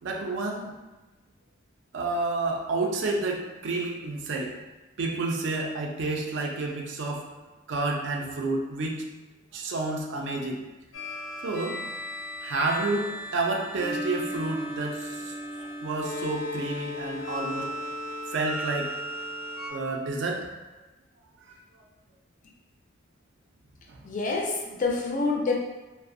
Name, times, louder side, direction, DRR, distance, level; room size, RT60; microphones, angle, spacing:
voice 1, 0.0-0.7 1.9-4.5 5.0-7.2 7.7-9.0 9.5-10.6 11.4-11.8 12.4-17.7 18.3-18.9 19.7-20.5 21.5-21.6 23.9-24.0, right 3 dB, 65° right, 0 dB, 0.4 m, -30 dB
sound 1, 10.9-19.7, left 1 dB, 85° left, 0.6 m, -35 dB
voice 2, 24.0-25.5, left 3 dB, 40° left, 0 dB, 0.3 m, -27 dB
2.4 x 2.0 x 2.5 m, 1.1 s
head